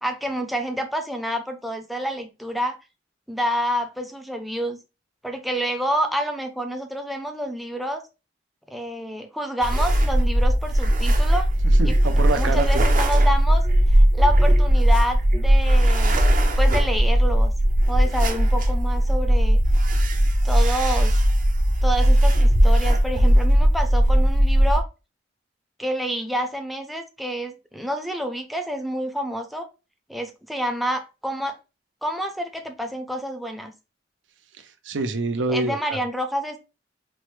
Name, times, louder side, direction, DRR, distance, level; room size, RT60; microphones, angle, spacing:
voice 1, 0.0-2.8 3.3-4.8 5.2-8.0 8.7-11.5 11.8-12.0 12.3-13.6 14.0-16.2 16.6-17.5 17.9-19.6 20.4-21.2 21.8-24.9 25.8-29.7 30.1-31.6 32.0-33.7 35.5-36.6, equal, ahead, 0.4 m, -28 dB
sound 1, 9.6-24.8, equal, 45° right, 0.6 m, -18 dB
voice 2, 11.8-12.9 34.9-36.0, right 3 dB, 90° right, 0.6 m, -26 dB
4.5 x 2.1 x 3.1 m
head